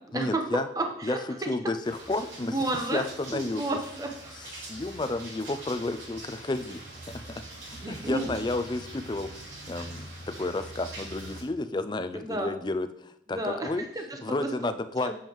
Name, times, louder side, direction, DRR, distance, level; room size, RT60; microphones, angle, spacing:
voice 1, 0.1-0.7 1.0-1.2 1.5-3.6 4.4-6.8 7.1-7.4 7.8-9.3 9.7-10.1 10.4-13.8 14.2-15.1, left 2 dB, 25° left, 11 dB, 0.4 m, -31 dB
voice 2, 0.8-1.5 2.3-3.0 3.3-4.5 7.2-7.3 7.8-8.4 12.1-12.5 13.3-14.5 15.0-15.1, right 2 dB, 20° right, 4 dB, 0.8 m, -32 dB
sound 1, 1.8-11.4, right 2 dB, 85° right, 2.9 m, -43 dB
7.3 x 7.1 x 3.1 m, 0.77 s
head